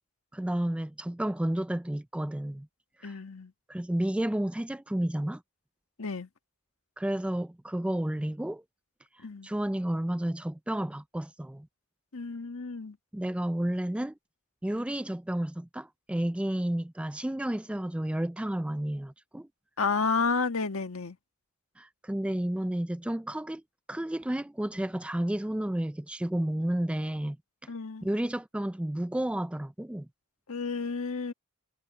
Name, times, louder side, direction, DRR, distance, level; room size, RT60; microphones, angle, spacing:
voice 1, 0.3-2.7 3.0-3.2 3.7-5.4 7.0-8.6 9.1-11.7 13.1-14.1 14.6-19.5 21.8-23.6 23.9-27.4 28.0-30.1, right 1 dB, 5° right, 0.3 m, -31 dB
voice 2, 3.0-3.5 6.0-6.3 9.2-9.5 12.1-13.0 19.8-21.2 27.7-28.1 30.5-31.3, left 4 dB, 75° left, 1.5 m, -31 dB
head